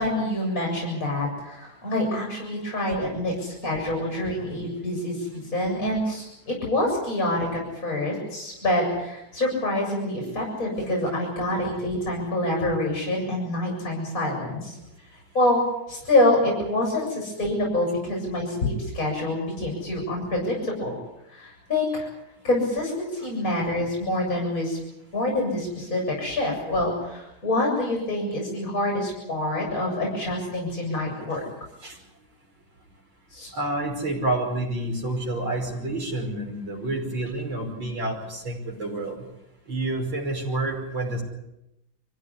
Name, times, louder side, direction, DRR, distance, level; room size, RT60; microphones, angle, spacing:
voice 1, 0.0-14.8 15.3-15.6 15.9-21.0 21.3-22.1 22.4-24.8 25.1-31.4 33.3-33.5, left 1 dB, 40° left, -1 dB, 7.6 m, -26 dB
voice 2, 33.5-39.2 39.7-41.2, right 2 dB, 65° right, -1 dB, 6.3 m, -29 dB
24.5 x 16.0 x 9.8 m, 0.86 s
omnidirectional pair, 2.3 m